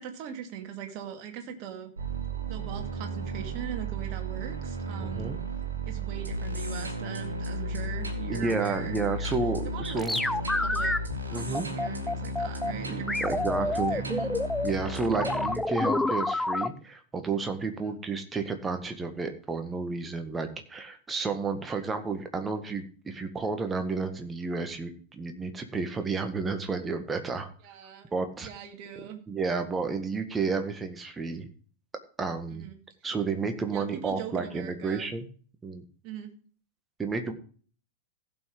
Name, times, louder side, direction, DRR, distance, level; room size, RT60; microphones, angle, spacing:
voice 1, 0.0-1.9 2.5-5.4 5.9-9.4 9.7-11.0 11.2-14.3 27.6-28.1 28.4-29.2 32.5-32.8 33.7-35.1 36.0-36.3, right 9 dB, 45° right, 4 dB, 2.3 m, -41 dB
sound 1, 2.0-15.6, right 1 dB, 75° right, 2.0 m, -34 dB
voice 2, 5.0-5.4 8.3-10.2 11.3-11.7 12.9-14.0 14.6-27.5 28.1-28.5 29.3-31.5 32.2-32.7 33.0-35.3 35.6-35.8 37.0-37.3, right 4 dB, 15° right, 6 dB, 1.7 m, -31 dB
sound 2, 10.0-11.0 11.5-12.7 13.1-16.7, left 2 dB, 5° left, 0.5 m, -28 dB
16.0 x 6.1 x 5.0 m, 0.42 s
figure-of-eight pair, 90°, 0 cm